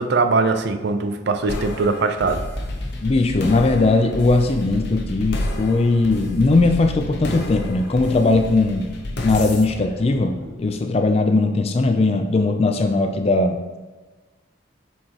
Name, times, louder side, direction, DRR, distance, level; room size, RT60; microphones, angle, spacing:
voice 1, 0.0-2.4, right 3 dB, 55° right, 8 dB, 0.4 m, -21 dB
sound 1, 1.5-10.9, left 1 dB, 55° left, 0.8 m, -31 dB
voice 2, 3.0-8.9 9.2-13.6, left 3 dB, 30° left, 6 dB, 0.4 m, -19 dB
7.5 x 4.6 x 2.9 m, 1.3 s
head